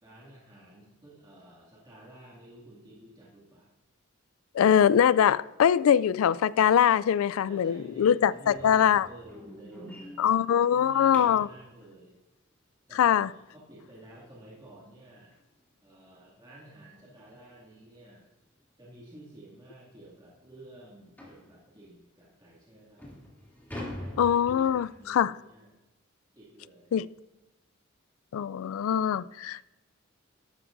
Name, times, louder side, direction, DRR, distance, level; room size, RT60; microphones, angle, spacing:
voice 1, 0.0-3.7 7.4-12.2 12.9-13.2 13.5-15.4 15.8-18.3 18.8-23.2 23.8-25.8 26.3-27.0, right 1 dB, 20° right, 2.3 m, -51 dB
voice 2, 4.5-9.1 10.2-11.5 13.0-13.3 24.2-25.3 26.9-27.1 28.3-29.7, left 8 dB, 80° left, 0.3 m, -23 dB
sound 1, 8.5-11.6 14.4-14.5 15.0-15.1 15.5-15.6 16.1-16.2 17.3-17.4 17.8-18.0 18.6-18.7 19.1-19.2 19.7-19.8 21.2-21.5 22.2-22.3 22.8-25.1, left 1 dB, 10° left, 2.7 m, -44 dB
12.5 x 12.0 x 2.6 m
head